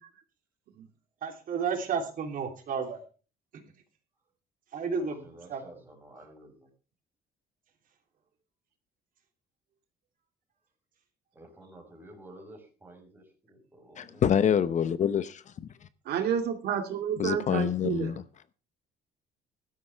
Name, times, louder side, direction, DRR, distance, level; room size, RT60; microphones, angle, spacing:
voice 1, 1.2-3.0 4.7-5.6, right 6 dB, 55° right, 3.3 m, -32 dB
voice 2, 5.0-6.7 11.3-14.2, right 1 dB, 10° right, 5.5 m, -51 dB
voice 3, 14.0-15.7 17.2-18.2, left 8 dB, 45° left, 0.8 m, -26 dB
voice 4, 16.1-18.1, right 8 dB, 70° right, 2.3 m, -30 dB
16.0 x 12.5 x 3.5 m
cardioid pair, 110°, 17 cm